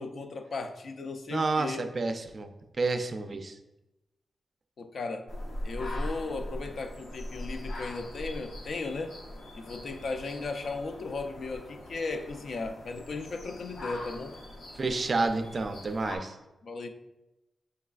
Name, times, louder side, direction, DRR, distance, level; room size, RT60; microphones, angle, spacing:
voice 1, 0.0-1.9 4.8-5.3 5.6-9.2 9.5-14.4 16.6-16.9, left 3 dB, 60° left, 7 dB, 0.4 m, -36 dB
voice 2, 1.3-2.5 2.8-3.6 14.8-16.4, right 3 dB, 45° right, 7 dB, 0.3 m, -29 dB
sound 1, 5.3-16.2, left 1 dB, 90° left, 0.7 m, -41 dB
5.4 x 3.1 x 2.3 m, 0.98 s
wide cardioid pair, 110°, 0 cm